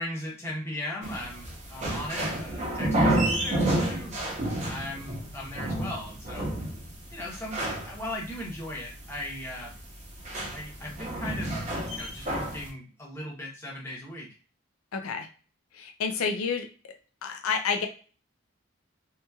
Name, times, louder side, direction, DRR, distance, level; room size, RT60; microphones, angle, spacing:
voice 1, 0.0-4.1 4.7-6.5 7.1-9.7 10.5-11.6 11.9-14.3, left 1 dB, 10° left, -3 dB, 0.8 m, -38 dB
sound 1, 1.0-12.7, right 1 dB, 35° right, 0.7 m, -30 dB
voice 2, 14.9-15.3 15.7-16.9 17.2-17.9, left 5 dB, 85° left, 5 dB, 0.5 m, -29 dB
2.8 x 2.8 x 2.3 m, 0.38 s
head